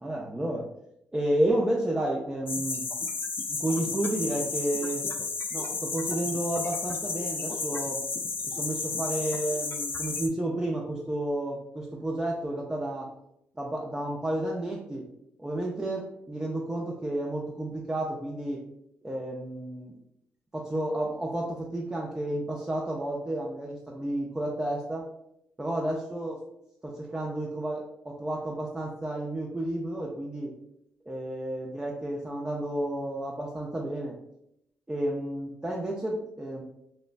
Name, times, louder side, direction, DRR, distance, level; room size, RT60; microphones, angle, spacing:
voice 1, 0.0-0.7 1.1-2.9 3.5-5.0 5.5-8.0 8.4-13.1 13.6-15.1 15.4-18.6 19.0-19.9 20.5-25.1 25.6-26.4 26.8-30.5 31.1-34.1 34.9-36.6, right 1 dB, 15° right, -2 dB, 0.5 m, -31 dB
sound 1, 2.5-10.3, left 4 dB, 45° left, 0.4 m, -32 dB
3.1 x 2.1 x 2.5 m, 0.80 s
supercardioid pair, 50°, 5 cm